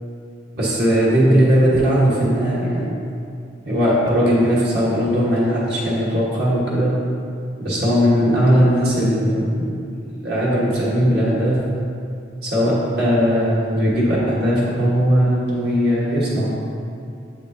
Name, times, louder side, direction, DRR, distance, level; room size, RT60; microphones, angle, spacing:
voice 1, 0.5-2.9 3.6-6.9 7.6-9.4 10.1-11.6 12.4-16.5, equal, 60° right, -7 dB, 1.4 m, -18 dB
7.6 x 5.1 x 2.7 m, 2.4 s
head